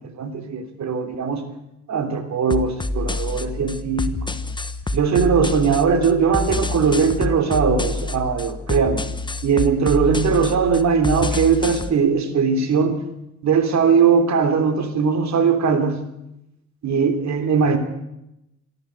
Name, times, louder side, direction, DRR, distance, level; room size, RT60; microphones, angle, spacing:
voice 1, 0.2-1.4 1.9-4.3 4.9-9.0 9.4-13.0 13.4-16.0 16.8-17.8, right 5 dB, 65° right, 8 dB, 3.2 m, -20 dB
sound 1, 2.5-11.9, left 2 dB, 15° left, 1.2 m, -27 dB
24.5 x 13.0 x 8.1 m, 0.86 s
cardioid pair, 90°, 30 cm